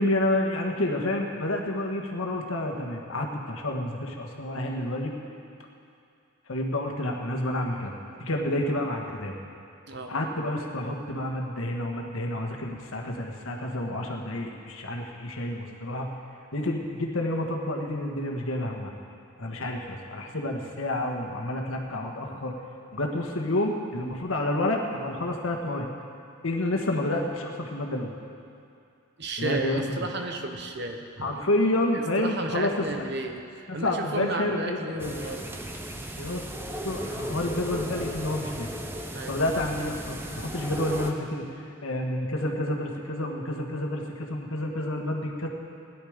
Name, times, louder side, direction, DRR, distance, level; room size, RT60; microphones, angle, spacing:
voice 1, 0.0-5.1 6.5-9.3 10.1-16.1 16.5-18.9 19.4-22.5 22.9-25.9 26.4-28.1 29.4-29.8 31.2-33.1 33.8-35.2 36.1-36.4 36.8-38.7 39.3-45.5, left 1 dB, 75° left, 1 dB, 1.5 m, -29 dB
voice 2, 29.2-31.3 31.9-33.4 33.7-35.5 39.1-39.4, right 2 dB, 50° right, 4 dB, 1.1 m, -33 dB
sound 1, 35.0-41.1, equal, 10° right, 0.7 m, -36 dB
17.0 x 10.5 x 5.1 m, 2.5 s
head